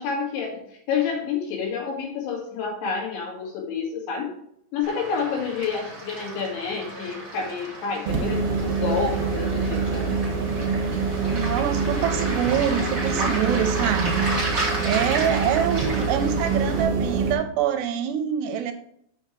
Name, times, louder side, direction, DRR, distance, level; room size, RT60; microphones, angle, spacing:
voice 1, 0.0-4.3 4.7-10.1, left 5 dB, 90° left, 0 dB, 4.3 m, -29 dB
Waves surf, 4.8-16.8, right 2 dB, 25° right, 2.7 m, -33 dB
sound 1, 8.1-17.3, right 4 dB, 60° right, 2.1 m, -25 dB
voice 2, 11.3-14.6 14.8-18.7, right 8 dB, 80° right, 8 dB, 2.6 m, -25 dB
7.4 x 5.6 x 6.2 m, 0.69 s
omnidirectional pair, 5.2 m